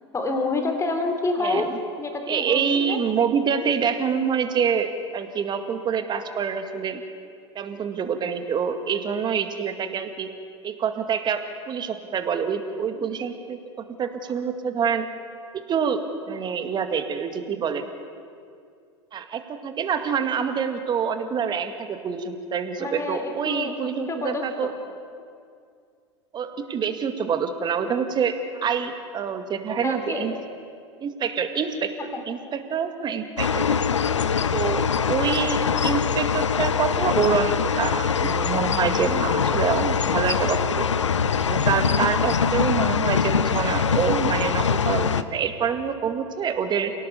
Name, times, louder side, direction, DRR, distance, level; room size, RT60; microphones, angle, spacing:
voice 1, 0.1-1.7 2.0-3.0 22.8-23.7 24.1-24.8 29.8-30.3, left 3 dB, 20° left, 4 dB, 3.7 m, -28 dB
voice 2, 1.4-1.8 2.3-7.0 7.6-10.3 10.6-15.1 15.5-17.9 19.1-24.7 26.3-30.3 31.0-31.9 32.3-33.8 34.5-40.8 41.4-46.9, right 6 dB, 30° right, 7 dB, 2.2 m, -26 dB
sound 1, 33.4-45.2, left 6 dB, 80° left, 0.8 m, -23 dB
28.0 x 18.0 x 7.2 m, 2.3 s
figure-of-eight pair, 85°, 15 cm